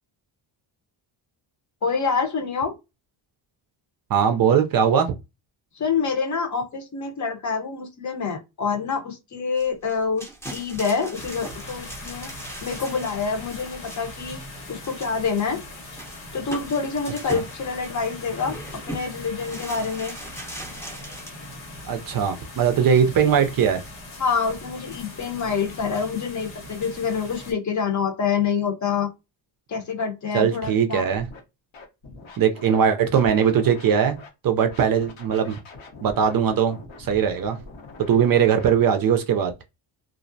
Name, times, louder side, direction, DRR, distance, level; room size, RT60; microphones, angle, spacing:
voice 1, 1.8-2.7 5.7-12.3 12.6-14.4 14.7-15.6 16.3-18.6 18.9-20.1 24.2-29.1 29.7-31.1, left 5 dB, 35° left, 0.8 m, -26 dB
voice 2, 4.1-5.1 17.3-17.4 21.9-23.8 30.3-31.3 32.4-34.2 34.4-35.6 36.0-37.6 38.1-39.6, right 7 dB, 45° right, 0.5 m, -20 dB
sound 1, 9.6-14.2 14.8-15.3 15.6-15.7 15.9-17.6 18.3-19.0 19.4-21.3, right 1 dB, 5° left, 0.7 m, -39 dB
sound 2, 11.1-27.5, left 1 dB, 90° left, 1.3 m, -40 dB
Scratching (performance technique), 31.0-31.4 31.7-34.3 34.6-38.8, left 3 dB, 65° left, 1.0 m, -44 dB
2.5 x 2.0 x 2.6 m
cardioid pair, 90°, 49 cm